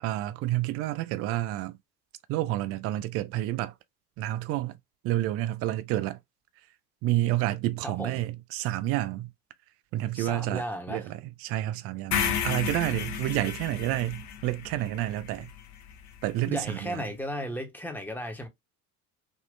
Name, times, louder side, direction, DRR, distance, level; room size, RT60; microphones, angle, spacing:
voice 1, 0.0-1.8 2.3-3.7 4.2-4.7 5.0-6.2 7.0-9.3 9.9-10.6 10.9-15.5 16.2-17.0, right 15 dB, 35° right, 0.4 m, -29 dB
voice 2, 7.8-8.2 10.1-11.1 16.4-18.5, equal, 5° left, 1.0 m, -35 dB
sound 1, 12.1-16.2, left 8 dB, 35° left, 0.7 m, -33 dB
3.6 x 2.5 x 2.5 m
figure-of-eight pair, 65°, 47 cm